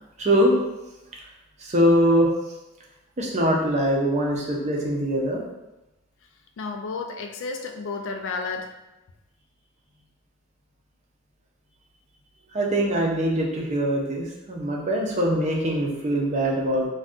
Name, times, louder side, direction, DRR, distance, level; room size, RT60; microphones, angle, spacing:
voice 1, 0.2-0.5 1.6-2.3 3.2-5.4 12.5-16.9, equal, 35° right, -1 dB, 0.5 m, -22 dB
voice 2, 6.6-8.7, left 4 dB, 60° left, 5 dB, 0.3 m, -32 dB
2.5 x 2.2 x 3.5 m, 0.98 s
head